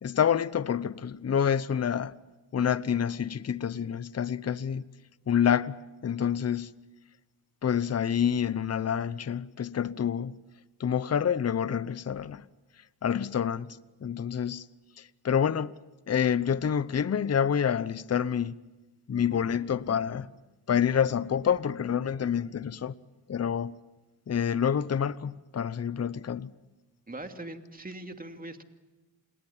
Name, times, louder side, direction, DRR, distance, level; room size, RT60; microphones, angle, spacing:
voice 1, 0.0-2.1 2.5-4.8 5.3-5.8 6.0-6.7 7.6-10.4 10.8-12.4 13.0-14.6 15.0-15.7 16.1-18.6 19.1-20.3 20.7-22.9 23.3-23.8 24.3-26.5, left 8 dB, 30° left, 0.8 m, -27 dB
voice 2, 27.1-28.6, right 2 dB, 20° right, 2.5 m, -41 dB
28.0 x 20.0 x 7.3 m
cardioid pair, 70°, 47 cm